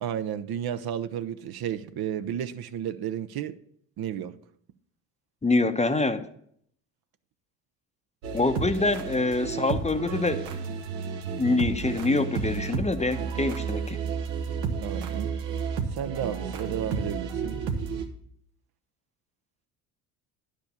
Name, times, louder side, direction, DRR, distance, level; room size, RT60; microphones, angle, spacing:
voice 1, 0.0-3.6 4.0-4.3 14.8-15.3 15.9-17.6, right 10 dB, 50° right, 0.8 m, -32 dB
voice 2, 5.4-6.3 8.3-10.6 11.4-14.0, left 3 dB, 15° left, 0.8 m, -25 dB
sound 1, 8.2-18.0, right 6 dB, 80° right, 1.4 m, -32 dB
10.5 x 5.0 x 6.7 m
hypercardioid pair, 60°, 49 cm